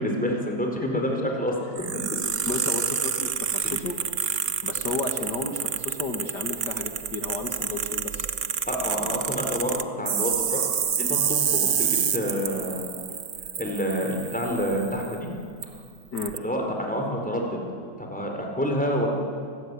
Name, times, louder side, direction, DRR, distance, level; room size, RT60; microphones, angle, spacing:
voice 1, 0.0-1.5 8.7-10.6 11.0-13.0 13.6-15.3 16.4-17.6 18.0-19.1, equal, 5° left, 1 dB, 4.4 m, -28 dB
voice 2, 0.8-1.3 2.5-4.0 4.6-8.3 16.1-16.3, left 3 dB, 65° left, 4 dB, 2.5 m, -33 dB
sound 1, 1.8-15.1 15.6-15.7 16.2-16.4, right 8 dB, 50° right, 1.1 m, -28 dB
27.5 x 20.5 x 9.8 m, 2.3 s
omnidirectional pair, 2.0 m